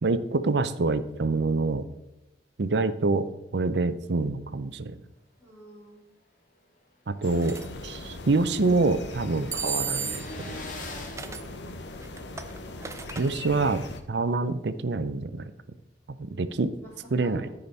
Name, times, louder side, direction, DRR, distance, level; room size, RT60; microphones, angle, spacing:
voice 1, 0.0-1.9 2.6-3.3 3.5-5.0 7.1-7.6 7.8-10.6 13.2-13.8 14.1-15.4 16.2-16.7 17.1-17.5, right 3 dB, 70° right, 13 dB, 0.6 m, -26 dB
voice 2, 5.4-6.1 7.4-7.6 11.2-11.8 13.7-13.8 16.2-17.6, equal, 15° left, -12 dB, 3.8 m, -48 dB
sound 1, 6.8-6.9 7.2-7.3 7.4-12.3, left 2 dB, 45° left, 1.4 m, -45 dB
sound 2, 7.2-14.0, left 2 dB, 70° left, 0.9 m, -40 dB
sound 3, 7.4-7.7 9.5-10.4 11.2-11.5 12.0-13.3, right 6 dB, 15° right, 0.5 m, -33 dB
14.0 x 5.1 x 4.1 m, 0.93 s
head